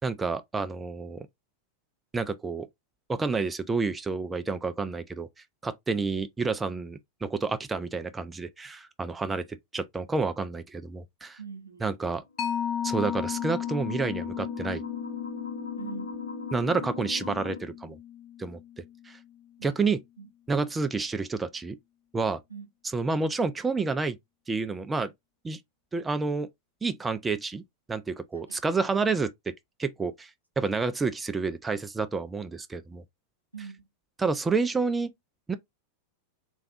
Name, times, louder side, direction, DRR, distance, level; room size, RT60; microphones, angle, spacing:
voice 1, 0.0-1.3 2.1-2.7 3.1-5.3 5.6-9.4 9.7-11.4 11.8-12.2 12.8-14.8 16.5-18.0 18.4-19.2 19.6-20.0 20.5-21.8 22.1-22.4 22.9-24.2 24.5-25.1 25.4-25.6 25.9-26.5 26.8-27.6 27.9-29.3 29.8-30.3 30.6-33.0 34.2-35.1 35.5-35.6, right 4 dB, 15° right, 0.3 m, -29 dB
voice 2, 11.4-12.0 15.8-16.2 19.6-19.8 20.2-20.3 22.5-22.7 28.5-28.6 33.5-33.9, right 6 dB, 90° right, 0.7 m, -42 dB
sound 1, 12.3-17.6, left 3 dB, 75° left, 0.8 m, -40 dB
Mallet percussion, 12.4-19.4, left 9 dB, 30° left, 0.7 m, -35 dB
3.3 x 2.4 x 2.5 m
figure-of-eight pair, 90°, 0 cm